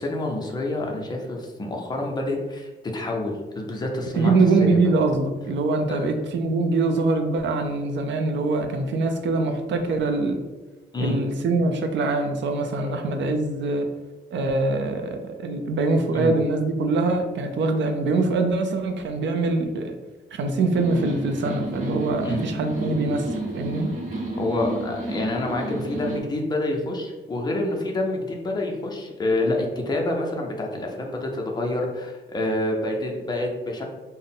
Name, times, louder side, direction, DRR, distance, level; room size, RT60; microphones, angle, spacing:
voice 1, 0.0-4.9 5.9-6.1 10.9-11.2 12.8-12.9 16.1-16.3 22.2-22.4 24.4-33.8, left 2 dB, 20° left, 0 dB, 0.5 m, -27 dB
voice 2, 4.2-10.4 11.0-13.9 14.3-19.9 20.3-23.9, right 3 dB, 85° right, 6 dB, 0.5 m, -23 dB
sound 1, 20.7-26.2, right 2 dB, 45° right, 0.7 m, -31 dB
3.7 x 2.1 x 3.9 m, 1.2 s
wide cardioid pair, 175°, 19 cm